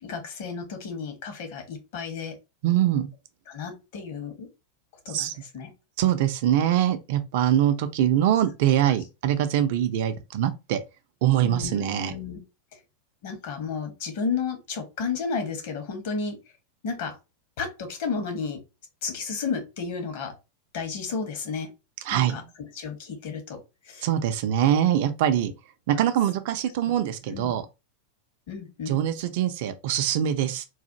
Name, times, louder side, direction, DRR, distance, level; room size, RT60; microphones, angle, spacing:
voice 1, 0.0-2.4 3.5-4.5 5.0-5.7 11.4-12.4 12.7-12.8 13.2-16.4 16.8-17.2 17.6-18.6 19.0-20.3 20.7-21.7 22.1-23.6 23.8-24.1 25.9-26.0 26.9-27.0 27.3-27.5 28.5-29.0, left 5 dB, 50° left, 1.1 m, -32 dB
voice 2, 2.6-3.1 5.1-5.3 6.0-10.8 11.2-12.1 22.0-22.4 24.0-25.5 25.9-27.6 28.9-30.6, right 11 dB, 50° right, 0.5 m, -23 dB
4.0 x 2.4 x 2.7 m
figure-of-eight pair, 90°, 0 cm